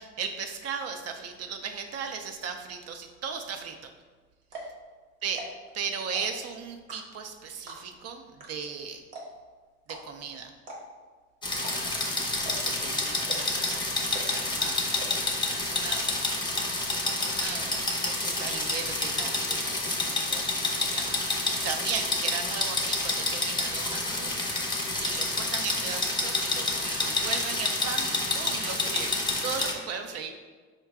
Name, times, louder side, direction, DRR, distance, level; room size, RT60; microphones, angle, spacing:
voice 1, 0.0-3.8 5.2-5.4 5.7-9.0 9.9-10.5 11.8-14.9 15.5-16.1 16.9-30.3, right 6 dB, 55° right, 5 dB, 0.5 m, -37 dB
sound 1, 4.0-4.1 4.4-4.8 5.2-5.7 6.0-6.5 6.9-7.3 7.7-8.0 8.4-8.5 8.7-8.8 9.1-9.5 9.9-10.0 10.6-11.0 11.5-12.0 12.4-12.8 13.2-13.6 14.1-14.5 15.0-15.1 15.4-15.5 15.8-16.2 16.5-17.1, right 2 dB, 90° right, 1.0 m, -41 dB
sound 2, 11.4-29.7, left 2 dB, 15° left, 0.6 m, -29 dB
4.7 x 2.2 x 3.5 m, 1.4 s
supercardioid pair, 85°, 31 cm